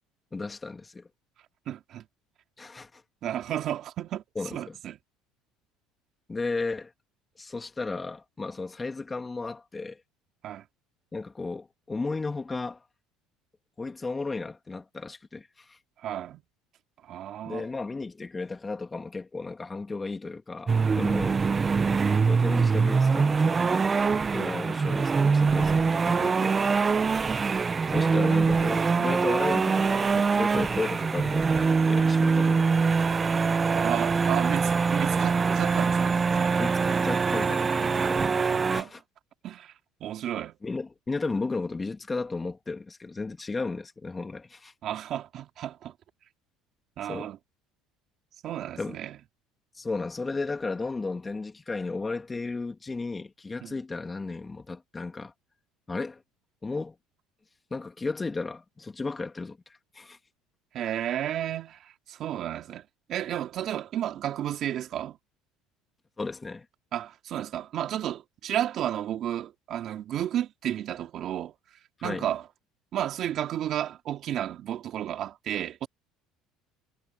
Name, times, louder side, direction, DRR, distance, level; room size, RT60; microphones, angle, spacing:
voice 1, 0.3-1.1 2.6-3.0 4.4-4.8 6.3-6.9 7.4-10.0 11.1-12.8 13.8-15.8 17.4-21.4 22.3-24.0 24.3-26.6 27.9-33.2 36.6-38.3 38.7-39.0 40.6-44.7 47.0-47.3 48.8-49.0 49.7-55.3 55.9-56.2 56.6-56.9 57.7-60.2 66.2-66.6 72.0-72.3, left 3 dB, 20° left, 2.7 m, -34 dB
voice 2, 1.7-2.0 3.2-4.2 4.5-5.0 10.4-10.6 16.0-16.4 17.0-17.7 21.0-21.2 26.9-27.1 33.7-36.6 38.5-38.9 39.4-39.7 40.0-40.6 44.8-45.9 47.0-47.4 48.4-49.2 53.6-53.8 60.7-65.2 66.9-71.5 72.0-72.4 72.9-75.9, right 11 dB, 55° right, 2.9 m, -32 dB
sound 1, 20.7-38.8, right 5 dB, 25° right, 0.9 m, -24 dB
supercardioid pair, 105°, 0 cm